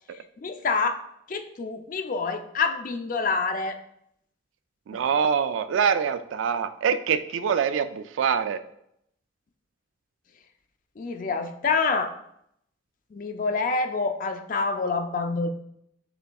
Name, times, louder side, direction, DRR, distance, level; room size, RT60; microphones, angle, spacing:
voice 1, 0.4-1.0 1.3-3.7 11.0-12.1 13.1-15.5, left 4 dB, 45° left, 7 dB, 0.4 m, -27 dB
voice 2, 4.9-8.6, right 7 dB, 85° right, 11 dB, 0.3 m, -24 dB
6.8 x 3.4 x 2.3 m, 0.74 s
head